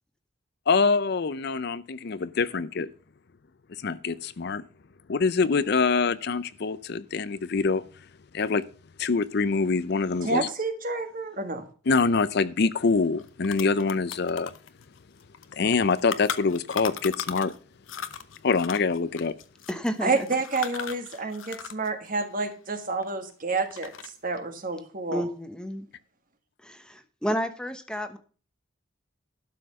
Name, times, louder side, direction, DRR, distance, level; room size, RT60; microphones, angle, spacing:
voice 1, 0.7-2.9 3.8-4.6 5.1-7.8 8.3-8.6 9.0-10.5 11.9-14.5 15.6-17.5 18.4-19.3, left 4 dB, 55° left, 0.5 m, -25 dB
voice 2, 10.2-11.6 20.0-23.9 24.2-25.2, right 3 dB, 45° right, 1.7 m, -29 dB
sound 1, 12.8-12.9 13.2-17.6 17.9-21.9 22.1-23.3 23.7-24.3, left 7 dB, 75° left, 0.9 m, -38 dB
voice 3, 19.7-20.3 21.1-21.3 25.1-25.9 26.6-28.2, equal, 5° left, 1.0 m, -31 dB
12.0 x 5.7 x 6.4 m
head